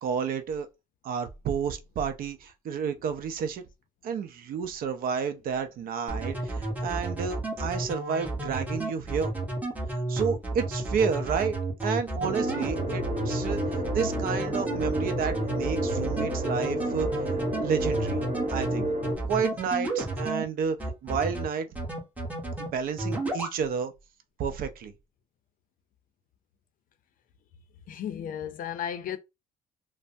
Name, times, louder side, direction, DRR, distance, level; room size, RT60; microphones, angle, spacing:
voice 1, 0.0-0.7 1.0-3.6 4.0-9.3 9.9-11.6 11.8-17.1 17.6-18.2 18.5-18.9 19.3-21.7 22.6-23.9 24.4-24.9, right 6 dB, 60° right, 0.5 m, -31 dB
sound 1, 6.1-20.4 20.8-21.4 21.8-22.7 23.0-23.5, right 2 dB, 10° right, 1.1 m, -32 dB
sound 2, 12.2-19.1, right 1 dB, 40° right, 1.3 m, -31 dB
voice 2, 27.9-29.2, left 9 dB, 55° left, 0.5 m, -34 dB
3.2 x 2.0 x 2.6 m
cardioid pair, 110°, 17 cm